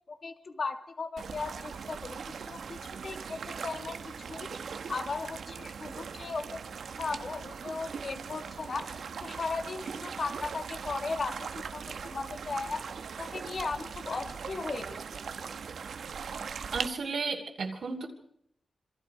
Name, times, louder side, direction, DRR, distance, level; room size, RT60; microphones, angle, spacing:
voice 1, 0.1-2.2 2.5-6.6 7.0-8.9 9.2-12.8 13.2-15.0, left 4 dB, 45° left, 7 dB, 2.1 m, -37 dB
sound 1, 1.2-16.9, right 6 dB, 85° right, 1.3 m, -40 dB
voice 2, 16.7-18.1, right 4 dB, 65° right, 0 dB, 2.8 m, -33 dB
27.5 x 26.0 x 4.8 m, 0.72 s
wide cardioid pair, 155°, 0 cm